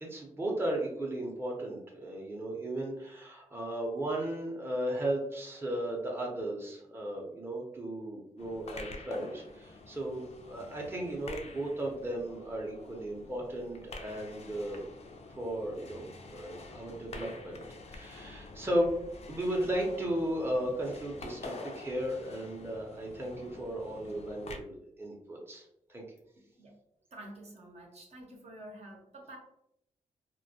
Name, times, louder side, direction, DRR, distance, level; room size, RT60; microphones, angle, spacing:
voice 1, 0.0-14.9 15.3-17.6 17.9-18.9 19.3-25.6 25.9-26.0, right 1 dB, 15° right, -2 dB, 0.6 m, -35 dB
sound 1, 8.4-24.6, left 3 dB, 50° left, 0.4 m, -48 dB
voice 2, 26.4-26.8 27.1-29.4, right 1 dB, 50° right, -1 dB, 0.7 m, -49 dB
2.2 x 2.1 x 2.7 m, 0.77 s
cardioid pair, 65°, 14 cm